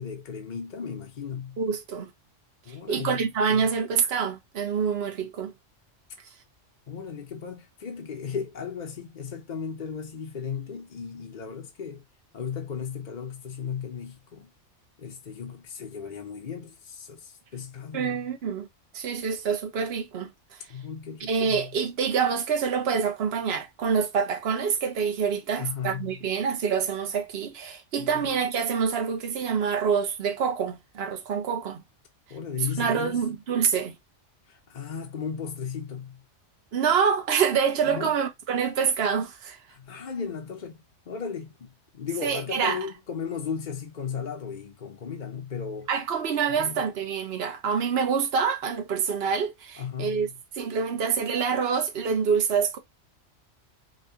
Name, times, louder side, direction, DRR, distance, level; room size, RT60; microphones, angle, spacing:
voice 1, 0.0-1.6 2.6-3.2 3.5-3.7 6.9-12.0 12.3-14.5 15.0-18.3 20.7-21.7 25.5-26.2 28.0-28.3 32.3-33.2 34.5-36.2 37.8-38.1 39.7-45.9 46.5-46.8 49.8-50.4, left 6 dB, 45° left, 0.8 m, -36 dB
voice 2, 1.6-2.1 2.9-5.5 17.9-18.7 18.9-20.3 21.2-31.8 32.8-33.9 36.7-39.6 42.2-42.8 45.9-50.3 50.6-52.8, right 6 dB, 60° right, 1.1 m, -26 dB
5.3 x 2.4 x 2.7 m
omnidirectional pair, 1.3 m